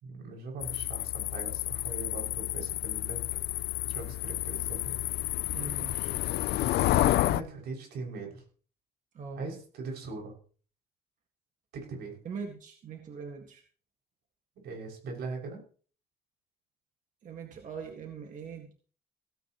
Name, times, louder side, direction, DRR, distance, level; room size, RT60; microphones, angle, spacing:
voice 1, 0.0-3.2 3.9-5.0 6.9-8.4 9.4-10.3 11.7-12.2 14.6-15.6, right 3 dB, 90° right, 1 dB, 6.6 m, -40 dB
sound 1, 0.6-7.4, left 15 dB, 80° left, 0.5 m, -30 dB
voice 2, 5.5-6.1 9.1-9.6 12.2-13.6 17.2-18.7, right 5 dB, 50° right, 3 dB, 2.0 m, -42 dB
16.5 x 15.5 x 3.1 m, 0.42 s
cardioid pair, 140°, 17 cm